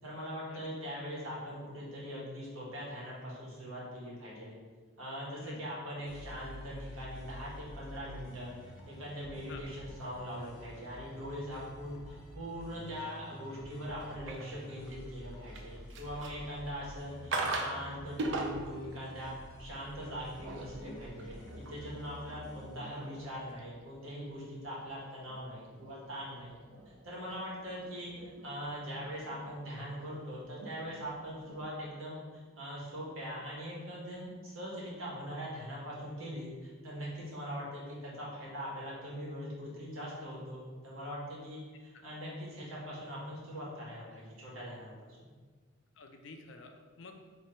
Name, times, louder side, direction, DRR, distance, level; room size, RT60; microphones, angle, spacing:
voice 1, 0.0-4.5 5.0-8.5 8.8-19.3 19.6-26.6 27.0-32.2 32.5-45.3, equal, 80° right, -5 dB, 1.4 m, -42 dB
sound 1, 6.1-23.5, left 1 dB, 85° left, 1.0 m, -50 dB
sound 2, 14.0-15.0 15.4-16.6 17.3-17.8 18.2-18.8 20.2-31.7, right 2 dB, 60° right, 0.4 m, -43 dB
voice 2, 46.0-47.1, left 3 dB, 65° left, 5 dB, 0.5 m, -50 dB
3.7 x 3.1 x 4.4 m, 1.5 s
head